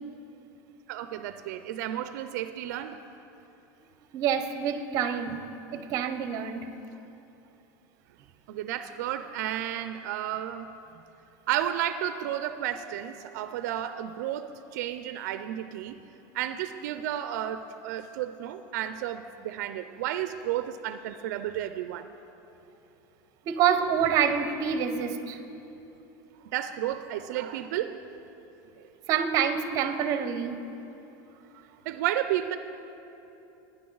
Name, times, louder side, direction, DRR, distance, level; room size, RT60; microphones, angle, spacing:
voice 1, 0.9-3.0 8.5-10.7 11.5-16.0 16.3-22.1 26.5-28.2 28.7-28.8 31.5-32.6, right 11 dB, 75° right, 10 dB, 0.4 m, -32 dB
voice 2, 4.1-5.4 5.7-6.7 23.5-25.4 29.1-30.6, right 8 dB, 40° right, 9 dB, 0.7 m, -27 dB
17.5 x 9.9 x 3.9 m, 2.9 s
supercardioid pair, 160°, 9 cm